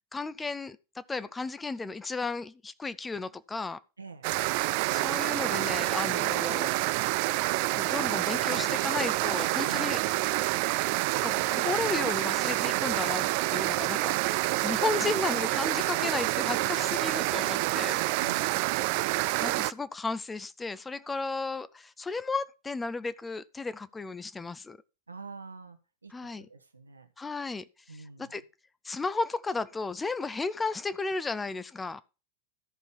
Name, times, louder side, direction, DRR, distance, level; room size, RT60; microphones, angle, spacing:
voice 1, 0.1-3.8 4.9-6.7 7.7-10.0 11.2-18.0 19.4-24.8 26.1-26.5 27.2-28.4 28.8-32.0, left 3 dB, 10° left, 0.5 m, -34 dB
voice 2, 4.0-4.3 9.7-10.0 18.2-18.6 25.1-25.8 26.0-27.1 27.9-28.3, right 4 dB, 80° right, 1.4 m, -46 dB
sound 1, 4.2-19.7, right 19 dB, 45° right, 0.4 m, -28 dB
13.5 x 5.5 x 4.6 m
figure-of-eight pair, 90°, 0 cm